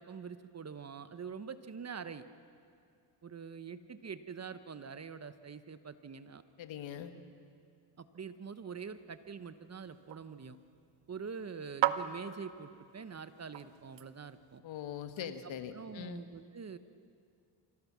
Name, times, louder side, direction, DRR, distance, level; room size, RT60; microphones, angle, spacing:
voice 1, 0.0-2.2 3.2-6.4 8.0-10.6 11.1-14.6 15.2-15.3 15.7-16.8, right 6 dB, 35° right, 12 dB, 1.1 m, -45 dB
voice 2, 6.6-7.1 14.6-16.2, left 9 dB, 70° left, 9 dB, 1.5 m, -42 dB
sound 1, 8.8-14.6, right 11 dB, 65° right, 1.0 m, -40 dB
25.0 x 16.0 x 7.4 m, 2.3 s
supercardioid pair, 70°, 48 cm